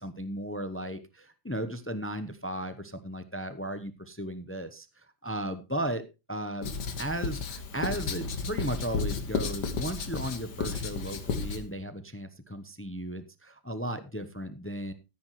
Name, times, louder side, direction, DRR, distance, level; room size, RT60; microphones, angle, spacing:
voice 1, 0.0-6.0 6.3-6.7 7.0-14.9, right 1 dB, 20° left, 11 dB, 0.3 m, -35 dB
Writing, 6.6-11.6, left 4 dB, 90° left, 2.0 m, -33 dB
14.0 x 9.9 x 3.1 m, 0.27 s
omnidirectional pair, 1.8 m